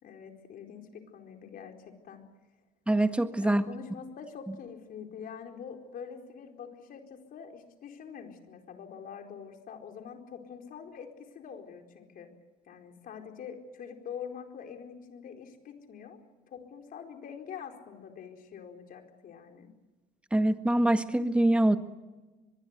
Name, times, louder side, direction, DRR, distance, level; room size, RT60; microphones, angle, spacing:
voice 1, 0.0-2.2 3.4-12.3 12.7-16.2 16.5-19.7, left 7 dB, 60° left, 4 dB, 4.5 m, -45 dB
voice 2, 2.9-3.6 20.3-21.8, right 1 dB, 5° right, 9 dB, 1.6 m, -24 dB
24.0 x 21.5 x 8.2 m, 1.2 s
cardioid pair, 110°, 17 cm